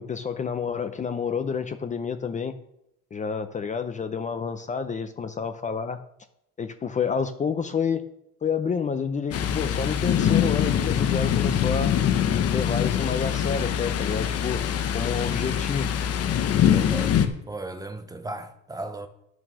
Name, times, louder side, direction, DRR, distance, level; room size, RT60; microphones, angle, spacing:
voice 1, 0.0-2.6 3.1-6.0 6.6-8.1 8.4-12.0 12.5-14.6 14.9-15.9, left 6 dB, 25° left, 0.6 m, -29 dB
Thunder, 9.3-17.3, left 9 dB, 50° left, 1.1 m, -24 dB
voice 2, 16.6-17.2 17.5-19.1, right 2 dB, 10° right, 0.8 m, -35 dB
11.0 x 6.2 x 6.2 m
cardioid pair, 140°, 30 cm